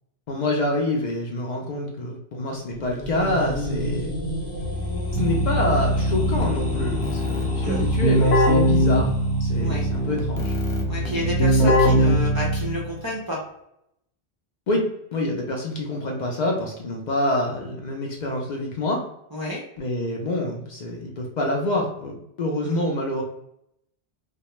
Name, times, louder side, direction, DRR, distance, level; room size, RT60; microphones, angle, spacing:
voice 1, 0.3-4.1 5.1-9.1 9.4-10.6 14.7-14.8 15.1-19.0 19.8-23.2, left 1 dB, 55° left, 0 dB, 0.5 m, -26 dB
sound 1, 2.7-9.5, equal, 15° left, 0.7 m, -33 dB
Keyboard (musical), 4.6-12.9, equal, 90° left, 0.9 m, -21 dB
voice 2, 10.9-13.4 19.3-19.6 22.6-22.8, equal, 35° right, -4 dB, 0.3 m, -30 dB
2.2 x 2.1 x 2.9 m, 0.77 s
omnidirectional pair, 1.0 m